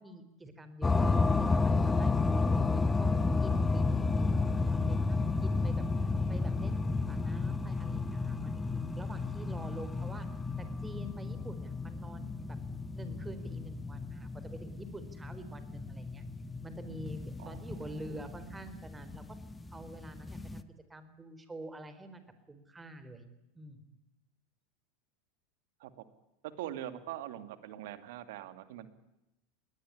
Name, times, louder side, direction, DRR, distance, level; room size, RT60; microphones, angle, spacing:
voice 1, 0.0-10.3 10.6-12.6 12.9-16.2 16.6-19.4 19.7-23.3 23.5-23.8, right 1 dB, 15° right, 11 dB, 4.2 m, -47 dB
sound 1, 0.8-20.6, left 3 dB, 15° left, 1.3 m, -32 dB
voice 2, 17.4-17.9 25.8-25.9 26.6-28.9, right 12 dB, 65° right, 12 dB, 2.4 m, -43 dB
22.0 x 19.0 x 9.9 m, 0.90 s
hypercardioid pair, 85°, 0 cm